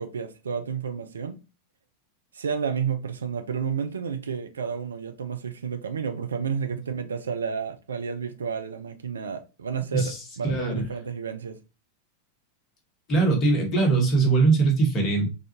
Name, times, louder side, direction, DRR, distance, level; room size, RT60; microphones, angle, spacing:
voice 1, 0.0-1.4 2.3-11.6, right 6 dB, 70° right, 0.4 m, -31 dB
voice 2, 10.4-10.8 13.1-15.3, right 3 dB, 35° left, 1.4 m, -21 dB
3.9 x 2.4 x 2.8 m
figure-of-eight pair, 90°, 0 cm